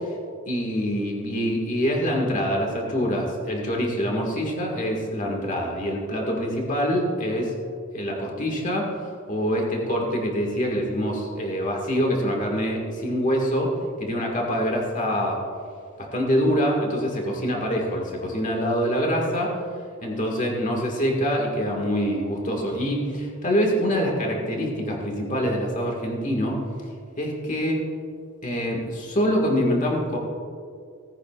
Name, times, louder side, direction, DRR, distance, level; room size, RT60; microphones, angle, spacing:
voice 1, 0.5-7.5 7.9-8.9 9.3-13.7 14.0-15.4 16.0-19.6 20.0-26.6 27.2-27.8 28.4-30.2, equal, 35° left, -1 dB, 1.9 m, -25 dB
18.0 x 9.8 x 2.5 m, 2.3 s
head